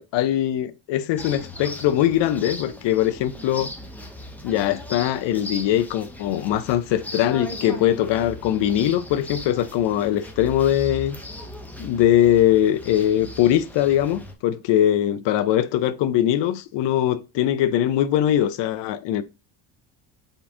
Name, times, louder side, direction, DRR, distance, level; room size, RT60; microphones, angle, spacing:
voice 1, 0.0-3.7 4.4-11.2 11.8-19.2, left 11 dB, 65° left, 0.6 m, -21 dB
sound 1, 1.2-14.3, left 1 dB, 5° left, 0.5 m, -38 dB
5.3 x 2.6 x 3.6 m
cardioid pair, 135°, 46 cm